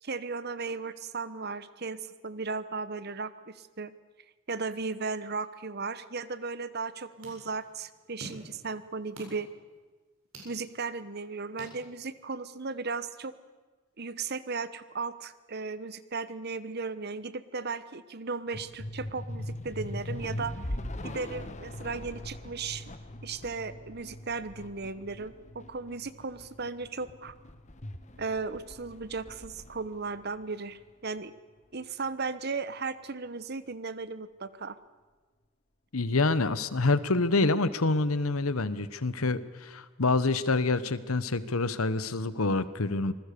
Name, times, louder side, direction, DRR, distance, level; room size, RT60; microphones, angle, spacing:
voice 1, 0.0-3.9 4.5-9.5 10.4-13.3 14.0-20.5 21.0-22.9 23.2-27.3 28.2-31.3 31.7-34.8, right 4 dB, 50° right, 15 dB, 1.1 m, -36 dB
sound 1, 6.7-12.4, right 1 dB, 80° right, 7.9 m, -51 dB
sound 2, 18.5-31.1, left 1 dB, 35° left, 1.3 m, -41 dB
voice 2, 35.9-43.1, left 3 dB, 90° left, 15 dB, 1.1 m, -27 dB
26.5 x 20.5 x 6.9 m, 1.3 s
head